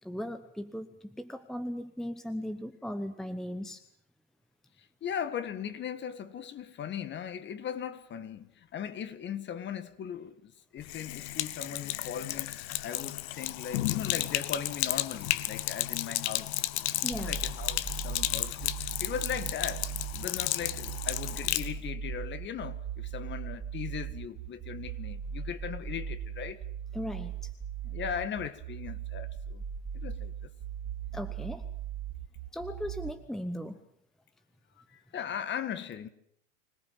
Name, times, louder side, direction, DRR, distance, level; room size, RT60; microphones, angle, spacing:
voice 1, 0.0-3.8 17.0-17.4 26.9-27.5 31.1-31.7 32.5-33.8, equal, ahead, 0.9 m, -37 dB
voice 2, 5.0-12.5 12.8-16.7 17.1-18.7 19.0-19.9 20.1-26.6 27.8-29.6 29.9-30.5 34.9-36.1, left 8 dB, 30° left, 1.7 m, -38 dB
Sink (filling or washing), 10.8-21.7, left 16 dB, 60° left, 1.2 m, -33 dB
sound 1, 17.1-33.1, right 8 dB, 30° right, 2.7 m, -38 dB
25.0 x 18.0 x 7.4 m
hypercardioid pair, 110°, 38 cm